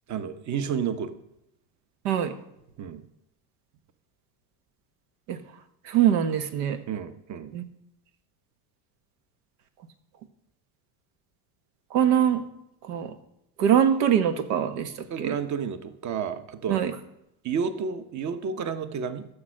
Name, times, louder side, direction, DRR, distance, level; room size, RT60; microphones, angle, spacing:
voice 1, 0.1-1.1 2.8-3.0 6.9-7.5 15.1-16.8 17.4-19.3, right 6 dB, 40° right, 11 dB, 1.0 m, -31 dB
voice 2, 5.9-6.8 7.5-7.6 11.9-12.4 12.9-13.1 13.6-14.9 15.2-15.3 16.7-16.9, right 9 dB, 85° right, 10 dB, 1.2 m, -23 dB
14.5 x 6.4 x 6.4 m, 0.84 s
supercardioid pair, 110°, 45 cm